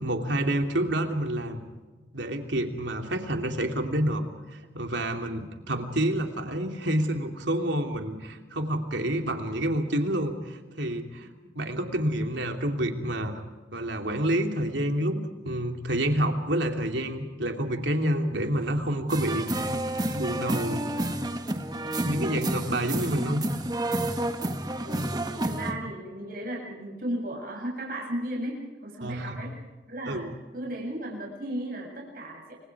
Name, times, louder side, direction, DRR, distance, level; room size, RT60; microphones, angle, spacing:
voice 1, 0.0-1.6 2.1-4.2 4.5-11.3 11.5-13.4 13.7-19.8 20.1-20.9 22.0-23.4 29.0-29.4 30.1-30.3, right 1 dB, 75° right, 4 dB, 3.0 m, -28 dB
sound 1, 19.1-25.7, right 1 dB, 20° right, 1.6 m, -30 dB
voice 2, 24.8-29.6 29.9-30.2 30.5-32.6, right 1 dB, 50° right, 0 dB, 7.7 m, -35 dB
29.5 x 26.0 x 4.9 m, 1.3 s
head